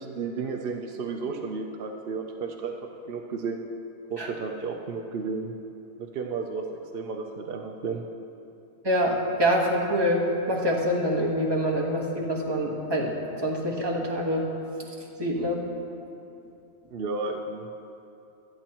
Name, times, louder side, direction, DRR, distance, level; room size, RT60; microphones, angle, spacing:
voice 1, 0.0-3.6 4.1-5.5 6.0-6.7 6.9-8.0 16.9-17.7, right 4 dB, 55° right, 2 dB, 0.7 m, -33 dB
voice 2, 8.8-13.1 13.4-14.5 15.2-15.6, equal, 15° right, -2 dB, 1.4 m, -25 dB
24.5 x 8.8 x 3.0 m, 2.7 s
omnidirectional pair, 1.6 m